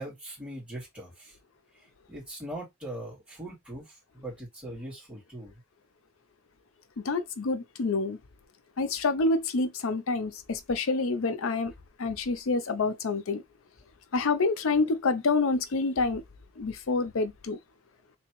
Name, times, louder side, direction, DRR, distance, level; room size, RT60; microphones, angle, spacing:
voice 1, 0.0-1.3 2.1-5.5, right 1 dB, 5° right, 2.4 m, -41 dB
voice 2, 7.0-8.2 8.8-11.7 12.0-13.4 14.1-16.2 16.6-17.6, left 3 dB, 75° left, 0.5 m, -27 dB
3.3 x 2.9 x 3.0 m
head